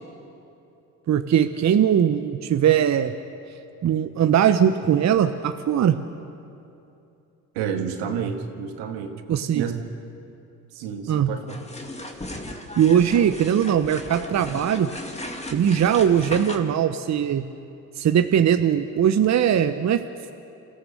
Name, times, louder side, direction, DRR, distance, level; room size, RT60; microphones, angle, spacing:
voice 1, 1.1-3.1 3.8-6.0 9.3-9.7 11.1-11.3 12.8-14.9 15.5-17.4 18.0-20.0, right 9 dB, 45° right, 8 dB, 1.0 m, -20 dB
voice 2, 7.5-9.2 9.5-9.7 10.7-11.6, right 7 dB, 80° right, 5 dB, 2.0 m, -29 dB
sound 1, 11.5-16.6, left 1 dB, 15° left, 2.3 m, -36 dB
28.0 x 14.5 x 6.8 m, 2.7 s
hypercardioid pair, 60°, 39 cm